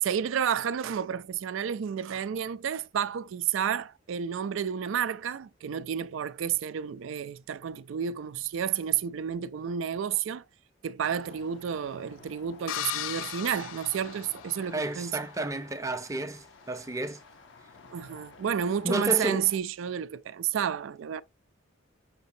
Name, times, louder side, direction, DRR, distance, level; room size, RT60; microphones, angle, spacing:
voice 1, 0.0-10.4 10.8-15.2 17.9-21.2, right 8 dB, 75° right, 0.4 m, -31 dB
sound 1, 11.0-19.6, left 4 dB, 65° left, 0.8 m, -52 dB
sound 2, 12.7-14.9, left 11 dB, 85° left, 0.4 m, -36 dB
voice 2, 14.7-17.2 18.8-19.5, right 1 dB, 15° right, 0.6 m, -31 dB
5.9 x 2.7 x 2.7 m
head